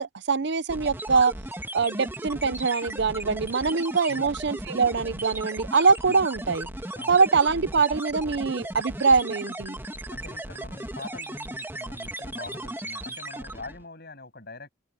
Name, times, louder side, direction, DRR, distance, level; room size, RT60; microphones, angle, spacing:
voice 1, 0.0-1.3 1.7-6.7 7.1-9.8, right 4 dB, 55° right, 0.6 m, -23 dB
sound 1, 0.7-13.9, right 1 dB, 10° right, 2.0 m, -36 dB
voice 2, 4.1-4.4 6.1-6.2 6.9-7.2 10.1-14.7, left 2 dB, 50° left, 7.6 m, -43 dB
head